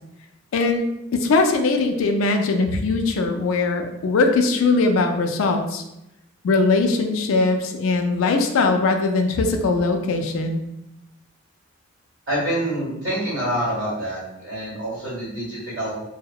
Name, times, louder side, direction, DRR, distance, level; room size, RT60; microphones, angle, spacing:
voice 1, 0.5-0.9 1.1-5.8 6.4-10.6, left 3 dB, 75° left, 5 dB, 0.3 m, -20 dB
voice 2, 12.3-16.0, right 1 dB, 65° right, -8 dB, 1.5 m, -26 dB
2.7 x 2.0 x 2.2 m, 0.88 s
head